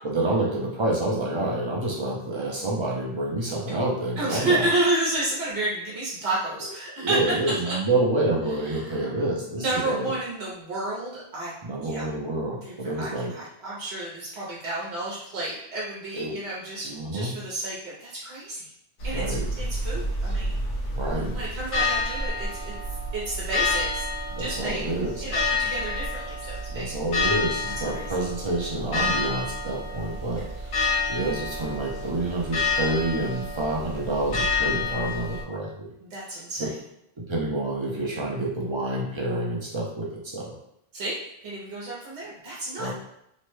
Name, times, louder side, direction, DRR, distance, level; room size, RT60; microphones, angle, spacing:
voice 1, 0.0-4.7 7.0-10.1 11.6-13.3 16.1-16.4 16.8-17.4 19.1-19.5 20.9-21.4 24.3-25.2 26.7-35.9 36.6-36.7 37.2-40.6 42.7-42.9, right 2 dB, 40° right, -2 dB, 0.4 m, -28 dB
voice 2, 4.2-7.2 7.6-7.7 8.7-9.1 9.6-11.5 11.8-12.1 12.6-18.7 19.0-20.6 21.3-22.7 23.1-24.1 24.4-24.9 25.2-26.9 27.6-28.1 36.0-36.7 40.9-41.2 41.4-42.9, right 2 dB, 90° right, -6 dB, 1.0 m, -31 dB
sound 1, 19.0-35.4, left 3 dB, 65° left, 0.9 m, -29 dB
3.1 x 2.1 x 3.0 m, 0.77 s
omnidirectional pair, 1.1 m